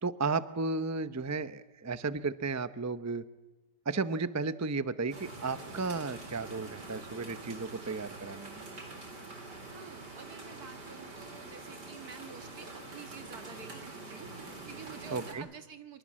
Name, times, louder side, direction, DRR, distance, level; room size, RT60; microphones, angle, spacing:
voice 1, 0.0-3.2 3.9-8.6 15.1-15.5, right 3 dB, 25° right, 13 dB, 0.3 m, -34 dB
sound 1, 5.1-15.3, right 2 dB, 80° right, 4.7 m, -45 dB
voice 2, 9.7-12.7 12.9-16.0, right 6 dB, 65° right, 9 dB, 2.2 m, -49 dB
24.5 x 22.5 x 7.5 m, 1.1 s
omnidirectional pair, 1.8 m